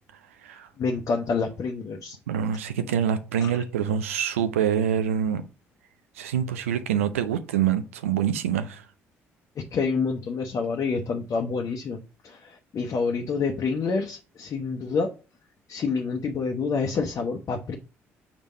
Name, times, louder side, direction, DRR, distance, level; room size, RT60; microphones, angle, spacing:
voice 1, 0.8-2.2 3.4-3.5 9.7-15.1 15.7-17.8, left 4 dB, 50° left, 0.8 m, -28 dB
voice 2, 2.3-5.4 6.2-8.8, right 9 dB, 85° right, 0.4 m, -25 dB
5.0 x 3.5 x 5.4 m
hypercardioid pair, 50°, 7 cm